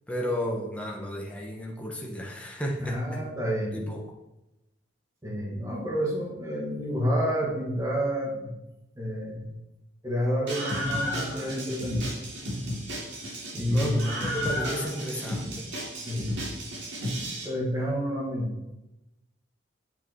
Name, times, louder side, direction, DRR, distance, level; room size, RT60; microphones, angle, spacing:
voice 1, 0.1-3.2 3.7-4.0 13.7-15.7, equal, 5° left, -1 dB, 1.1 m, -33 dB
voice 2, 2.8-3.8 5.2-8.6 9.0-9.5 10.0-12.0 13.5-14.1 16.0-16.5 17.4-18.5, equal, 15° right, -3 dB, 2.0 m, -29 dB
Screaming, 10.5-17.4, equal, 60° right, 2.6 m, -33 dB
9.0 x 5.8 x 4.6 m, 0.95 s
head